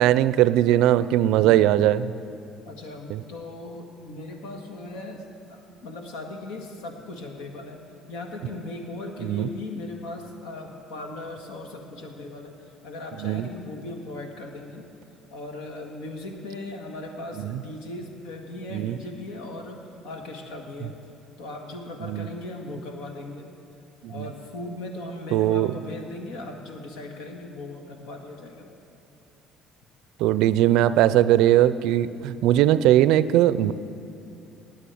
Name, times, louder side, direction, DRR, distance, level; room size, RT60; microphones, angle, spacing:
voice 1, 0.0-2.2 3.1-3.2 9.2-9.5 13.2-13.5 17.4-17.6 18.7-19.0 22.0-22.3 24.0-24.3 25.3-25.7 30.2-33.7, right 13 dB, 75° right, 16 dB, 0.4 m, -20 dB
voice 2, 2.6-5.2 5.5-7.8 8.1-14.9 15.3-20.9 21.4-23.5 24.1-28.7, left 2 dB, 85° left, 3 dB, 1.7 m, -38 dB
10.0 x 8.9 x 9.3 m, 2.7 s
cardioid pair, 120°, 0 cm